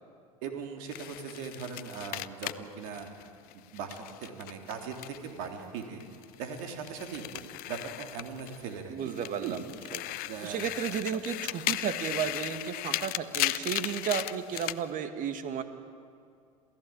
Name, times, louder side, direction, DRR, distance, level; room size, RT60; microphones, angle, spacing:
voice 1, 0.4-3.1 3.5-6.0 6.4-9.1 9.4-9.6 10.2-10.7, right 6 dB, 65° right, 4 dB, 3.3 m, -40 dB
sound 1, 0.9-5.5 5.8-8.7 9.1-14.8, left 17 dB, 55° left, 0.7 m, -36 dB
voice 2, 8.9-9.7 9.9-10.0 10.4-15.6, right 8 dB, 45° right, 9 dB, 2.0 m, -33 dB
27.5 x 16.0 x 8.9 m, 2.3 s
hypercardioid pair, 75°, 19 cm